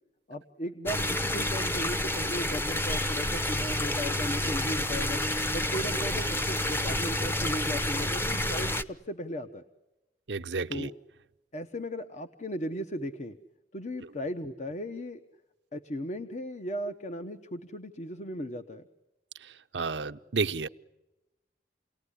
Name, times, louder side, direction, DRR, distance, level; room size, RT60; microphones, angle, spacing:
voice 1, 0.3-5.2 5.5-9.6 10.7-10.9 11.5-13.4 13.7-15.2 15.7-18.9, equal, 40° left, 1.0 m, -36 dB
sound 1, 0.9-8.8, left 1 dB, 15° left, 0.9 m, -29 dB
voice 2, 10.3-10.9 19.7-20.7, right 4 dB, 90° right, 0.9 m, -31 dB
29.0 x 19.0 x 10.0 m
head